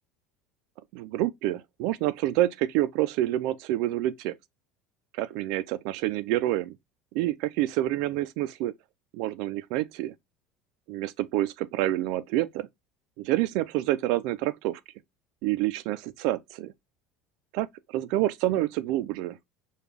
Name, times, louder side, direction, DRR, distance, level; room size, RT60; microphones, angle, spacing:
voice 1, 0.9-4.3 5.1-6.7 7.1-8.7 9.1-10.1 10.9-12.7 13.2-14.8 15.4-16.7 17.5-19.4, right 15 dB, 65° right, 0.3 m, -28 dB
5.1 x 2.3 x 3.2 m
supercardioid pair, 135°, 0 cm